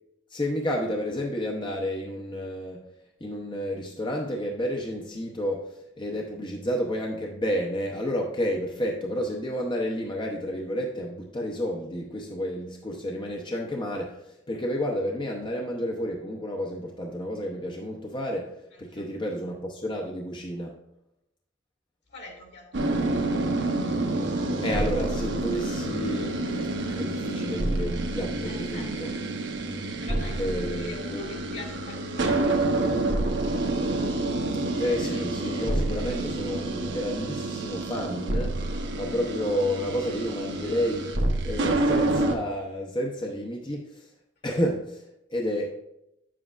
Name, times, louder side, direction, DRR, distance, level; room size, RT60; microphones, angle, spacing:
voice 1, 0.3-2.8 3.2-20.8 24.6-29.1 30.4-31.2 34.8-38.6 39.0-41.1 41.4-44.1 44.4-45.0 45.3-45.8, equal, 25° left, 0 dB, 0.7 m, -31 dB
voice 2, 18.7-19.2 22.1-23.4 28.4-29.3 30.0-32.9, left 3 dB, 65° left, -1 dB, 2.3 m, -44 dB
sound 1, 22.7-42.4, right 2 dB, 65° right, 0.9 m, -28 dB
9.0 x 7.5 x 2.4 m, 0.83 s
head